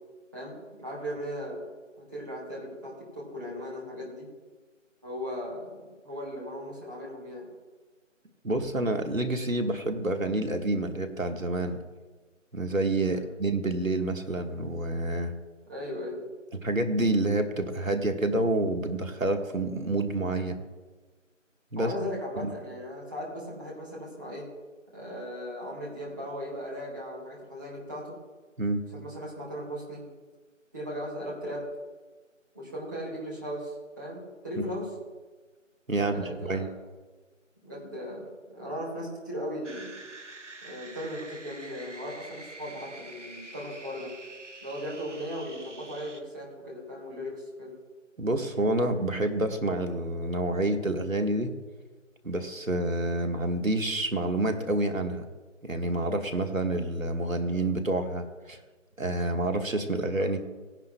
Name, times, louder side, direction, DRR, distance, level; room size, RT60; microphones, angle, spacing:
voice 1, 0.3-1.6 2.0-4.3 5.0-5.7 6.0-7.5 13.0-13.2 15.7-16.2 21.8-24.5 24.9-28.2 28.9-30.0 30.7-31.7 32.5-34.9 35.9-36.7 37.6-38.2 38.5-39.9 40.6-44.1 44.6-47.7, equal, 15° right, -7 dB, 2.0 m, -37 dB
voice 2, 8.4-11.8 12.5-15.3 16.5-20.6 21.7-21.9 22.4-22.5 28.6-28.8 35.9-36.7 48.2-51.5 52.2-55.2 55.6-58.6 59.0-60.4, right 2 dB, 85° right, 5 dB, 1.6 m, -28 dB
sound 1, 39.6-46.2, right 2 dB, 65° right, 1.3 m, -46 dB
17.5 x 10.5 x 2.3 m, 1.3 s
figure-of-eight pair, 165°, 39 cm